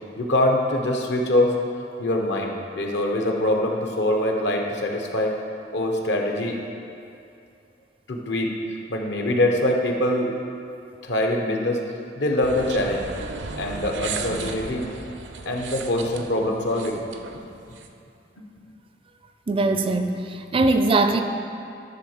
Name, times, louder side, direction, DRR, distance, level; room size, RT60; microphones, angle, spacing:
voice 1, 0.2-1.5 2.0-5.4 5.7-6.6 8.1-8.5 8.9-10.3 11.0-11.8 12.2-13.1 13.6-14.8 15.5-17.0, left 1 dB, 70° left, 1 dB, 1.0 m, -23 dB
sound 1, 12.4-17.9, right 4 dB, 75° right, 0.6 m, -35 dB
voice 2, 19.5-21.2, right 2 dB, 30° right, 7 dB, 0.4 m, -21 dB
11.0 x 3.6 x 6.5 m, 2.6 s
head